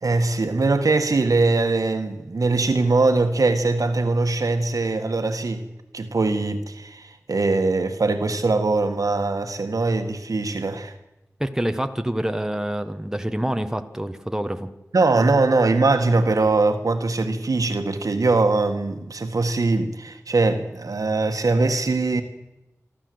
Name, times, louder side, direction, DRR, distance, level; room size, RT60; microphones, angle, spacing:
voice 1, 0.0-5.7 5.9-10.9 14.9-22.2, right 3 dB, 85° right, 1.7 m, -21 dB
voice 2, 11.4-14.7, right 1 dB, 10° right, 1.4 m, -26 dB
27.0 x 12.5 x 8.0 m
wide cardioid pair, 70°, 6 cm